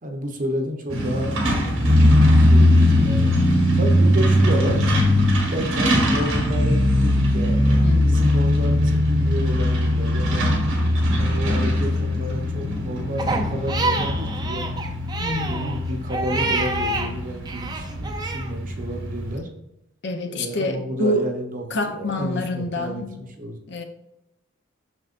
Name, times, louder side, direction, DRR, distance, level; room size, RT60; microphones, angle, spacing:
voice 1, 0.0-4.9 5.5-10.5 11.2-14.8 15.4-19.5 20.3-23.6, equal, 40° right, 3 dB, 0.9 m, -30 dB
Truck, 0.9-19.4, left 1 dB, 75° right, 1.5 m, -20 dB
voice 2, 7.8-8.3 15.2-15.8 20.0-21.2 21.7-23.1 23.7-23.8, left 1 dB, 55° left, 4 dB, 0.8 m, -26 dB
Crying sobbing, 13.2-17.1 17.4-18.5, right 3 dB, 20° right, 0.6 m, -27 dB
6.5 x 6.1 x 2.5 m, 0.88 s
head